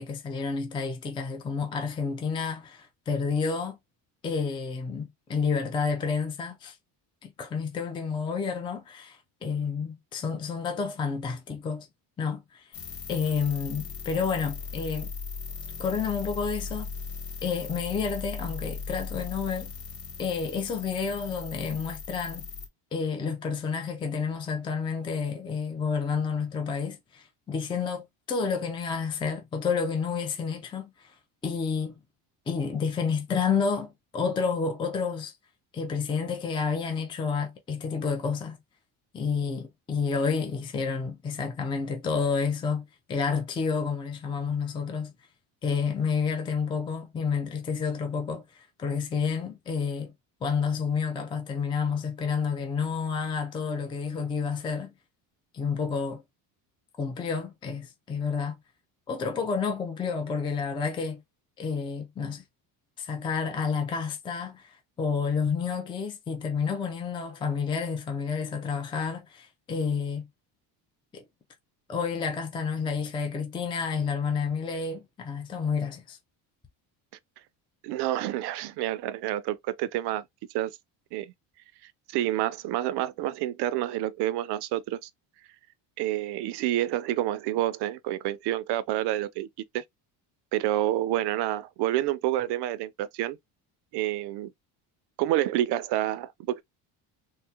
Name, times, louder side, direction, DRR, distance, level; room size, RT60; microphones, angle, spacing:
voice 1, 0.0-3.8 4.2-6.8 7.2-11.9 12.2-12.7 13.1-15.1 15.8-16.9 17.4-19.7 20.2-22.4 22.9-31.1 31.4-32.0 32.5-35.3 35.7-38.6 39.1-45.1 45.6-50.1 50.4-54.9 55.5-56.2 57.0-58.6 59.1-61.2 61.6-62.4 63.0-70.3 71.1-71.2 71.9-76.2, left 5 dB, 10° left, 0.4 m, -30 dB
sound 1, 12.7-22.7, left 5 dB, 50° left, 1.4 m, -38 dB
voice 2, 77.8-80.2 80.5-80.8 81.1-81.3 82.1-85.1 86.0-89.5 89.7-89.8 90.5-93.4 93.9-94.5 95.2-96.6, right 13 dB, 70° right, 0.5 m, -28 dB
3.6 x 2.1 x 2.7 m
cardioid pair, 155°, 43 cm